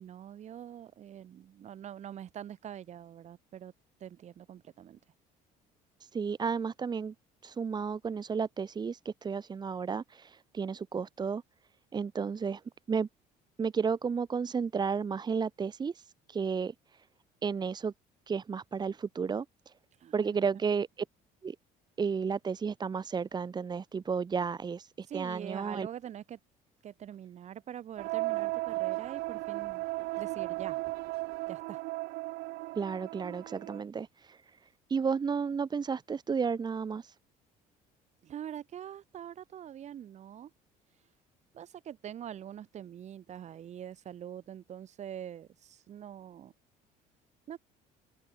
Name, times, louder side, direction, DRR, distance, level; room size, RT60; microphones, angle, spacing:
voice 1, 0.0-3.7 4.0-5.0 20.0-20.4 25.1-26.4 26.8-29.9 30.2-30.8 31.5-31.8 38.2-40.5 41.5-46.5 47.5-47.6, right 10 dB, 45° right, 7.2 m, -44 dB
voice 2, 6.0-7.1 7.4-11.4 11.9-12.6 12.9-13.1 13.6-17.1 17.4-17.9 18.3-19.7 20.1-21.0 21.4-21.6 22.0-25.9 32.7-37.2, right 6 dB, 25° right, 2.8 m, -33 dB
sound 1, 28.0-33.8, right 21 dB, 80° right, 0.9 m, -35 dB
open air
cardioid pair, 135°, 16 cm